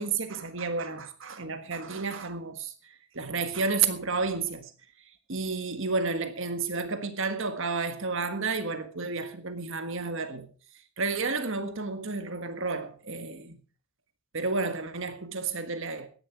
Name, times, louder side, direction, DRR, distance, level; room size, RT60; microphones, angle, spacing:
voice 1, 0.0-2.7 3.1-4.7 5.3-10.5 11.0-13.6 14.3-16.1, right 4 dB, 60° right, 1.6 m, -31 dB
15.0 x 11.0 x 4.6 m
head